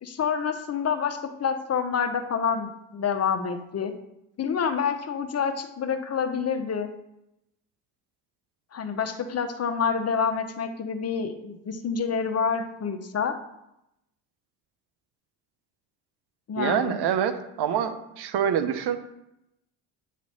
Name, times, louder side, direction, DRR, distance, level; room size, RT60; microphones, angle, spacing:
voice 1, 0.0-3.9 4.4-6.9 8.7-13.4 16.5-17.0, left 6 dB, 35° left, 7 dB, 0.8 m, -27 dB
voice 2, 16.6-17.3 17.6-19.0, right 8 dB, 60° right, 9 dB, 0.9 m, -25 dB
9.1 x 3.1 x 4.2 m, 0.85 s
supercardioid pair, 65°, 45 cm